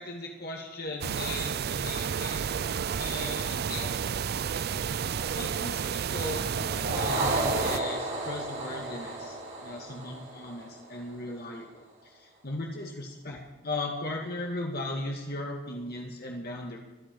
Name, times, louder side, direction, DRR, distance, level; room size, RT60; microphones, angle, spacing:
voice 1, 0.0-2.6 3.0-3.9 5.3-9.4 9.6-16.8, left 2 dB, 55° left, 0 dB, 1.7 m, -37 dB
sound 1, 1.0-7.8, right 7 dB, 55° right, 0.4 m, -31 dB
sound 2, 6.5-11.1, right 2 dB, 75° right, 5.8 m, -33 dB
23.5 x 8.7 x 5.2 m, 1.2 s
head